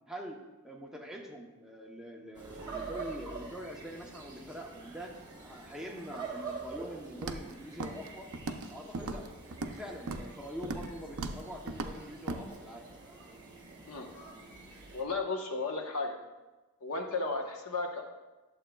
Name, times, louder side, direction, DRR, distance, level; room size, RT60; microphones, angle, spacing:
voice 1, 0.1-8.3 8.7-12.9, equal, ahead, -1 dB, 0.7 m, -44 dB
sound 1, 2.3-15.0, right 4 dB, 20° right, 1.3 m, -46 dB
Walk footsteps, 7.2-7.5 7.8-8.1 8.3-8.7 8.9-9.8 10.1-10.3 10.6-10.9 11.2-11.4 11.7-11.9 12.3-12.4, right 3 dB, 75° right, 0.5 m, -37 dB
voice 2, 14.9-16.2 16.8-18.0, left 3 dB, 80° left, 3 dB, 1.0 m, -34 dB
11.0 x 7.3 x 2.3 m, 1.1 s
head